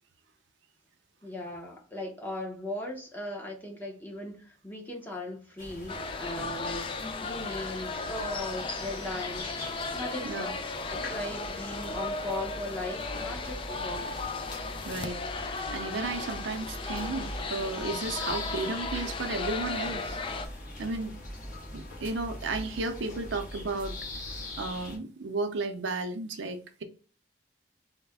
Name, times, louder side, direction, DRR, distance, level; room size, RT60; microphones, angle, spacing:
voice 1, 1.2-6.9 7.2-9.5 9.9-14.0, left 1 dB, 10° left, 0.7 m, -38 dB
sound 1, 5.6-25.0, left 1 dB, 45° left, 1.2 m, -42 dB
sound 2, 5.9-20.5, left 3 dB, 30° left, 0.3 m, -36 dB
voice 2, 14.8-20.2 20.8-21.2 21.7-23.9 24.6-26.8, right 3 dB, 80° right, 0.5 m, -34 dB
3.2 x 2.1 x 3.4 m
head